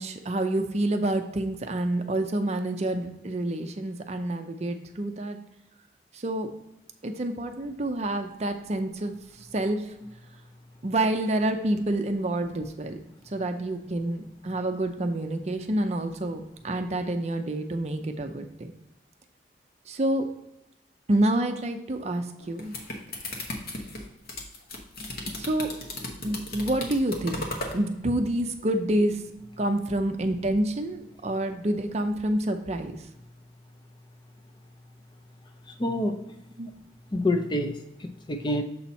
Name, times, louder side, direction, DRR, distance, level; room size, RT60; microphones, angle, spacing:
voice 1, 0.0-5.4 6.1-6.5 7.0-9.1 9.5-9.9 10.8-13.0 13.3-18.7 19.9-20.3 21.1-22.7 25.4-25.7 26.2-27.4 27.7-29.2 29.6-33.0 36.6-36.7, right 1 dB, 35° right, 6 dB, 0.5 m, -28 dB
sound 1, 22.4-27.8, left 1 dB, 50° left, 1.1 m, -36 dB
voice 2, 35.7-36.2 37.1-38.6, left 1 dB, 25° left, 4 dB, 0.5 m, -27 dB
7.0 x 4.2 x 4.2 m, 0.90 s
head